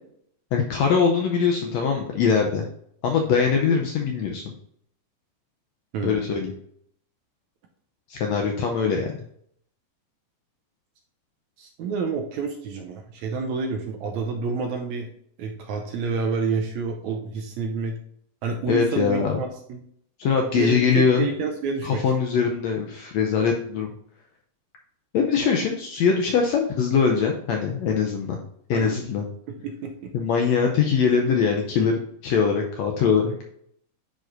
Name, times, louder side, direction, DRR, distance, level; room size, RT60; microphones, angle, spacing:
voice 1, 0.5-2.7 3.0-4.4 6.0-6.5 8.1-9.1 18.7-19.4 20.2-21.3 21.8-23.9 25.1-28.4 28.7-29.2 30.1-33.3, left 6 dB, 80° left, 2 dB, 1.6 m, -22 dB
voice 2, 5.9-6.3 11.6-15.1 15.4-18.0 18.4-19.8 20.6-22.1 28.7-29.0 29.5-30.1, right 5 dB, 75° right, 3 dB, 1.8 m, -29 dB
10.5 x 4.9 x 2.6 m, 0.68 s
omnidirectional pair, 3.8 m